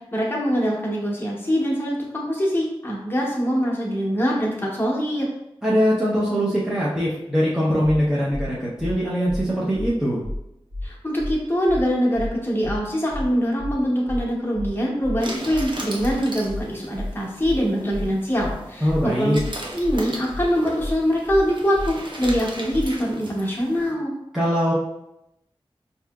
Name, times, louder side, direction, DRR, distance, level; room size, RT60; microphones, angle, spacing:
voice 1, 0.1-5.3 10.8-19.4 19.7-24.1, equal, 20° left, -4 dB, 0.9 m, -23 dB
voice 2, 5.6-10.2 18.8-19.4 24.3-24.7, equal, 5° right, -7 dB, 0.7 m, -22 dB
sound 1, 8.3-8.5 8.8-8.9 9.3-9.4 9.7-9.9 10.2-10.4 10.7-10.9 11.2-11.3 11.7-11.8 12.1-12.3 12.6-12.8 13.1-13.3 13.6-13.7 14.1-14.2 14.5-14.7 15.0-15.2 15.5-15.7 16.0-16.1 16.5-16.6 16.9-17.1 17.4-17.6 17.9-18.1 18.4-18.5 18.9-19.0 19.3-19.5 19.8-20.0 20.3-20.5 20.8-20.9 21.3-21.4 21.7-21.9 22.2-22.4 22.7-22.9, left 1 dB, 70° right, 1.1 m, -30 dB
sound 2, 15.2-23.9, right 1 dB, 50° right, 0.7 m, -38 dB
4.7 x 2.8 x 2.3 m, 0.84 s
wide cardioid pair, 70°, 10 cm